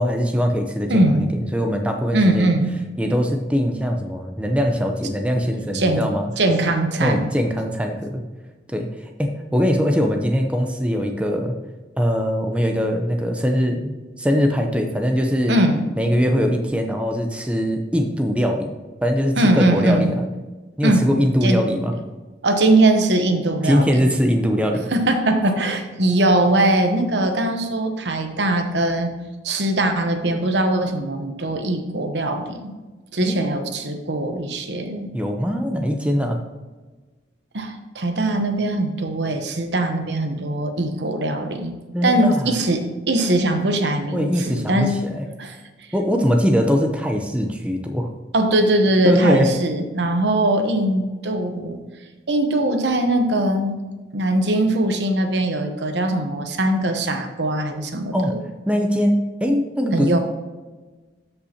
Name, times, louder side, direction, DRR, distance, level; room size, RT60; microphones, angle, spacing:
voice 1, 0.0-1.0 1.3-2.5 3.0-6.3 7.0-8.2 8.7-8.9 9.2-11.6 12.0-13.9 14.2-15.6 16.0-18.7 19.0-20.2 20.8-21.9 23.6-24.8 33.2-33.3 35.1-36.4 41.9-42.5 44.1-45.3 45.9-48.1 49.0-49.5 58.1-58.3 58.7-60.2, equal, 5° right, 3 dB, 0.7 m, -21 dB
voice 2, 0.9-1.3 2.1-2.7 5.7-6.1 6.4-7.3 15.5-15.8 19.4-20.1 20.8-21.1 21.4-21.6 22.4-24.1 24.9-29.1 29.4-32.7 33.1-35.1 37.5-41.8 42.0-45.0 45.4-45.6 48.3-51.8 52.3-53.8 54.1-58.4 59.9-60.2, right 1 dB, 80° right, 6 dB, 1.0 m, -21 dB
13.0 x 5.6 x 2.9 m, 1.2 s
head